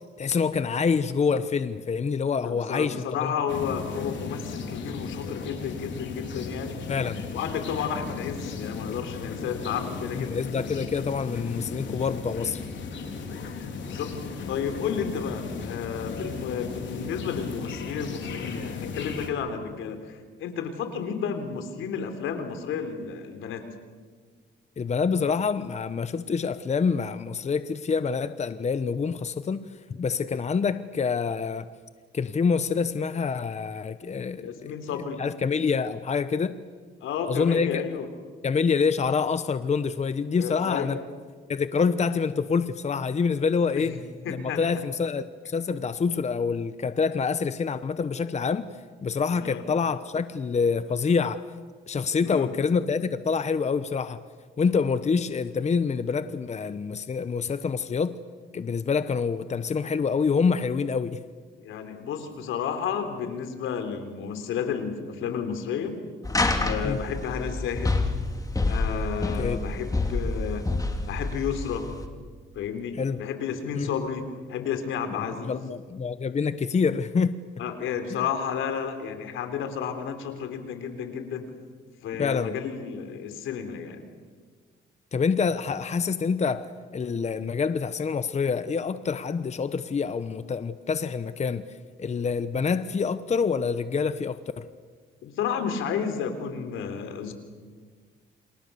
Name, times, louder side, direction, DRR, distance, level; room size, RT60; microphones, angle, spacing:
voice 1, 0.2-3.3 6.9-7.3 10.2-12.6 24.8-31.7 32.1-34.5 35.2-36.6 37.3-37.8 38.4-41.0 41.5-43.9 44.3-48.7 49.0-51.5 51.9-54.2 54.6-58.1 58.5-61.2 66.8-67.0 69.4-69.6 73.0-73.2 73.7-73.9 75.5-77.3 82.2-82.6 85.1-94.7, left 5 dB, 35° left, 12 dB, 1.0 m, -26 dB
voice 2, 2.4-6.8 7.3-10.4 13.8-23.6 34.3-35.2 37.0-38.1 40.3-41.0 43.7-44.8 49.4-49.6 52.2-52.5 61.6-66.0 66.6-68.0 68.7-70.7 71.1-71.9 72.5-75.6 77.6-81.5 82.0-84.0 95.2-97.3, left 7 dB, 85° left, 7 dB, 3.7 m, -32 dB
sound 1, 3.5-19.3, left 5 dB, 70° left, 4.1 m, -36 dB
sound 2, 66.2-72.1, left 2 dB, 15° left, 2.9 m, -28 dB
29.0 x 26.5 x 7.0 m, 1.5 s
cardioid pair, 90°, 20 cm